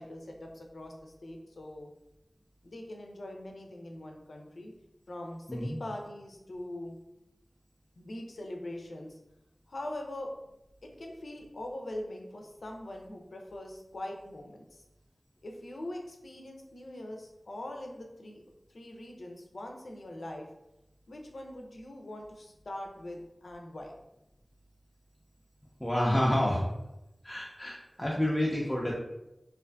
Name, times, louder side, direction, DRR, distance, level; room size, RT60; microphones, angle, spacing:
voice 1, 0.0-1.9 2.6-4.7 5.1-6.9 8.0-9.2 9.7-10.3 10.8-14.8 15.4-18.4 18.7-20.5 21.1-23.9, left 1 dB, 80° left, 1 dB, 0.4 m, -42 dB
voice 2, 25.8-26.6 27.2-28.9, left 1 dB, 10° left, -5 dB, 0.4 m, -28 dB
2.4 x 2.4 x 2.2 m, 0.91 s
wide cardioid pair, 70°, 0 cm